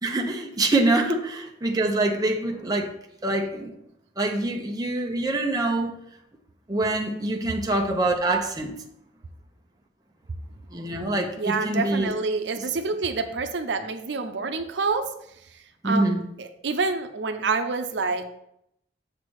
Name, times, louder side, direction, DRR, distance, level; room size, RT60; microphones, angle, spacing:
voice 1, 0.0-2.9 3.2-3.7 4.2-5.9 6.7-8.7 10.7-12.1 15.8-16.2, right 2 dB, 20° right, 2 dB, 0.7 m, -25 dB
voice 2, 11.4-15.1 15.8-16.1 16.4-18.3, right 4 dB, 80° right, 7 dB, 0.6 m, -27 dB
7.3 x 3.3 x 6.1 m, 0.76 s
head